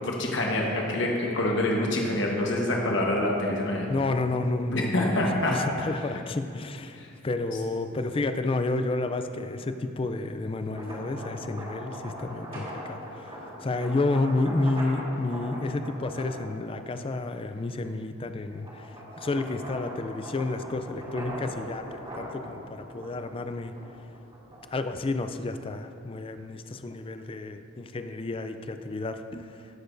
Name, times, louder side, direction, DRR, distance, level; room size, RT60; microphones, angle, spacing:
voice 1, 0.0-3.9 4.7-5.5 7.0-7.1, left 1 dB, 65° left, -1 dB, 1.3 m, -26 dB
voice 2, 3.9-5.2 5.5-7.0 7.2-18.9 19.2-23.7 24.7-29.5, left 2 dB, 30° left, 9 dB, 0.4 m, -30 dB
sound 1, 10.6-17.2 17.7-24.9, equal, 30° right, 2.1 m, -41 dB
16.0 x 6.7 x 2.6 m, 2.6 s
head